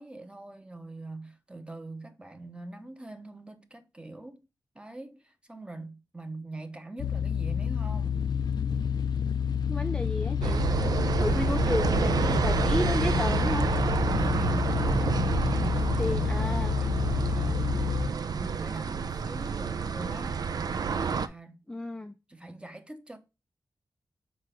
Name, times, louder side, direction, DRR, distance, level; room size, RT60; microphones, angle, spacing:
voice 1, 0.0-4.4 4.7-8.2 10.9-11.7 14.2-14.7 15.5-17.9 18.3-20.5 21.0-21.5 22.3-23.2, right 2 dB, 15° right, 0.9 m, -43 dB
sound 1, 7.0-18.1, left 7 dB, 80° left, 0.5 m, -29 dB
sound 2, 7.8-14.6, right 1 dB, 40° right, 1.7 m, -44 dB
voice 2, 9.7-10.6 11.2-13.7 16.0-16.8 21.7-22.2, left 1 dB, 10° left, 0.4 m, -32 dB
sound 3, 10.4-21.3, right 6 dB, 65° right, 0.5 m, -29 dB
6.3 x 4.6 x 3.8 m
wide cardioid pair, 90°, 7 cm